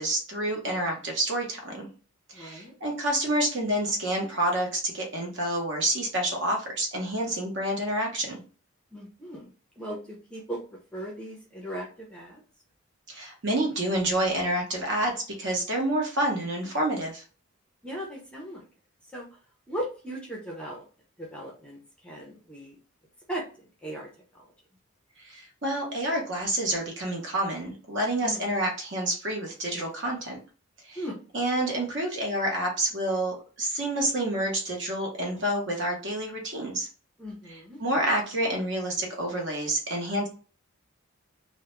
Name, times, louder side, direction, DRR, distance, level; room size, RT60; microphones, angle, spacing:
voice 1, 0.0-1.9 2.3-8.4 13.1-17.2 25.2-30.4 30.8-31.0 31.3-36.9 37.5-40.3, right 1 dB, 55° right, 0 dB, 0.8 m, -28 dB
voice 2, 2.3-2.7 8.9-12.4 17.8-18.6 19.1-19.4 19.7-20.8 21.2-22.8 23.3-23.4 23.8-24.5 28.2-28.5 31.0-31.2 37.2-37.8, right 1 dB, 5° left, -2 dB, 0.4 m, -38 dB
2.2 x 2.0 x 2.9 m, 0.37 s
head